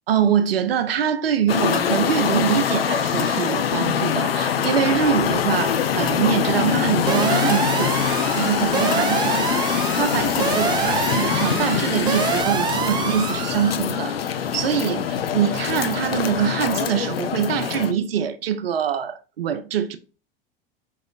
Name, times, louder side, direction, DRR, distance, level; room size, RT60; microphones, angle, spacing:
voice 1, 0.1-20.0, right 8 dB, 75° right, 0.5 m, -24 dB
sound 1, 1.5-17.9, left 8 dB, 75° left, 0.5 m, -23 dB
sound 2, 7.1-13.7, right 6 dB, 15° right, 0.3 m, -26 dB
4.5 x 2.9 x 2.3 m
figure-of-eight pair, 80°, 30 cm